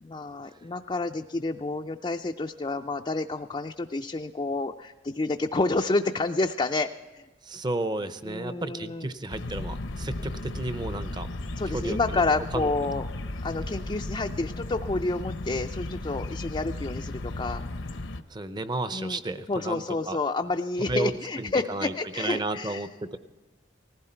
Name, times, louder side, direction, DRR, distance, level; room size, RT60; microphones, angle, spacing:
voice 1, 0.0-7.2 8.2-9.1 11.6-13.1 13.4-17.6 18.9-19.2 19.5-22.9, left 3 dB, 25° left, 3 dB, 0.4 m, -29 dB
voice 2, 7.4-11.3 11.7-12.2 12.5-12.7 18.3-20.2 20.9-21.1 21.4-23.2, right 2 dB, 20° right, 11 dB, 0.6 m, -32 dB
sound 1, 9.3-18.2, left 2 dB, 70° left, 0.8 m, -35 dB
19.5 x 15.5 x 4.4 m, 1.3 s
head